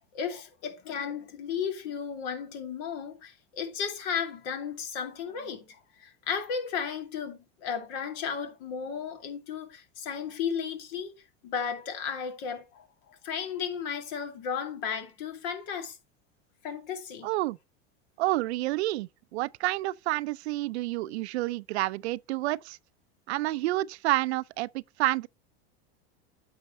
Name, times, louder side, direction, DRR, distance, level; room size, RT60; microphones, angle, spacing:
voice 1, 0.1-11.1 11.4-16.0 16.6-17.3, left 7 dB, 65° left, 2.4 m, -34 dB
voice 2, 17.2-17.6 18.2-22.8 23.3-25.3, right 18 dB, 75° right, 0.5 m, -29 dB
9.1 x 6.5 x 3.1 m
hypercardioid pair, 105°, 33 cm